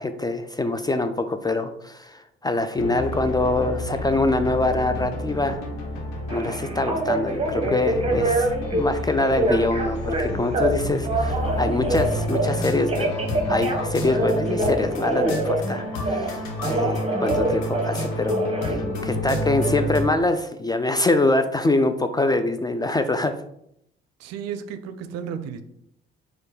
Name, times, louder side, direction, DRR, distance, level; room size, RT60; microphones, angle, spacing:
voice 1, 0.0-5.6 6.3-13.2 13.5-23.3, left 2 dB, 15° left, 9 dB, 0.3 m, -24 dB
sound 1, 2.8-20.0, left 1 dB, 60° left, 1.1 m, -30 dB
Telephone, 6.3-8.8 9.2-10.7 11.0-12.5 12.9-16.3 16.6-18.8, right 2 dB, 20° right, 1.0 m, -25 dB
voice 2, 24.2-25.6, right 7 dB, 55° right, 11 dB, 0.5 m, -33 dB
4.3 x 2.2 x 4.7 m, 0.73 s
figure-of-eight pair, 45°, 30 cm